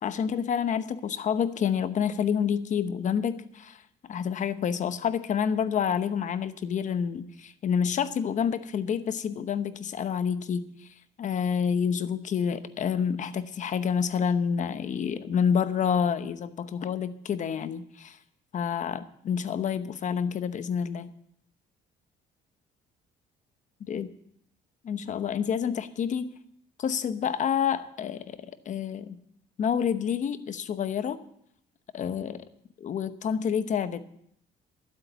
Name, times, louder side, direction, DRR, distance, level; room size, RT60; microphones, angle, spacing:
voice 1, 0.0-10.7 11.2-18.2 18.5-21.1 23.9-24.1 24.8-26.3 26.8-29.2 29.6-31.2 31.9-32.5 32.8-34.0, left 7 dB, 45° left, 12 dB, 1.0 m, -28 dB
12.0 x 8.5 x 8.0 m, 0.71 s
cardioid pair, 110°, 17 cm